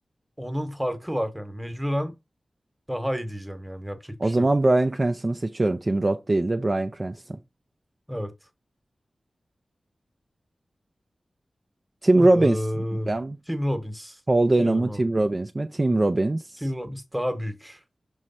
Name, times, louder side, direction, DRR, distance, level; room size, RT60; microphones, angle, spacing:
voice 1, 0.4-2.1 2.9-4.5 8.1-8.3 12.2-13.1 13.5-14.2 14.6-15.0 16.6-17.8, equal, 5° right, 1.3 m, -30 dB
voice 2, 4.2-7.4 12.0-13.4 14.3-16.6, right 2 dB, 30° right, 0.5 m, -22 dB
6.3 x 3.2 x 5.6 m
wide cardioid pair, 95°, 0 cm